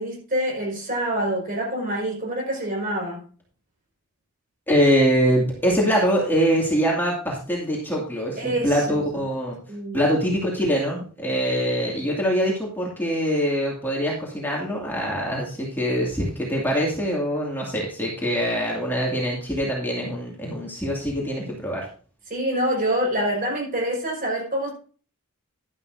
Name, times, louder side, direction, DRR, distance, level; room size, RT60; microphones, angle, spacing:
voice 1, 0.0-3.2 8.4-9.0 9.7-10.0 22.3-24.7, right 1 dB, 40° right, -1 dB, 5.2 m, -26 dB
voice 2, 4.7-9.6 9.9-21.9, equal, 10° left, -3 dB, 2.3 m, -23 dB
11.5 x 11.0 x 2.7 m, 0.40 s
head